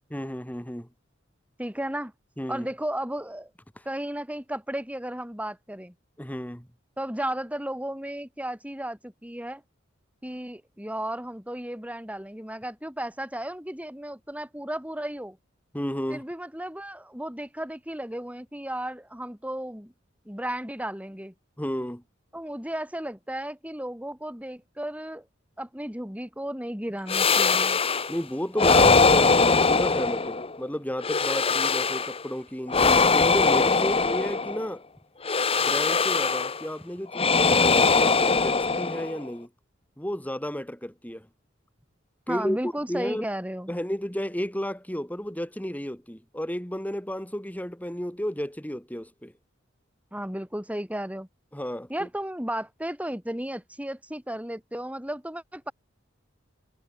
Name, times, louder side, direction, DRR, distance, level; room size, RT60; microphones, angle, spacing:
voice 1, 0.1-0.9 2.4-2.7 6.2-6.7 15.7-16.2 21.6-22.0 28.1-34.8 35.7-39.5 40.0-41.3 42.3-43.3 43.7-49.3 51.5-52.1, equal, 10° left, 2.9 m, -32 dB
voice 2, 1.6-2.1 2.5-3.5 3.9-5.9 7.0-9.6 10.2-15.4 16.1-19.9 20.3-21.3 22.3-25.3 25.6-27.8 42.3-43.8 50.1-51.3 51.9-55.7, right 1 dB, 5° right, 5.7 m, -34 dB
sound 1, 27.1-28.2 28.6-30.6 31.0-32.2 32.7-34.7 35.2-36.7 37.1-39.3, left 4 dB, 30° left, 1.3 m, -21 dB
head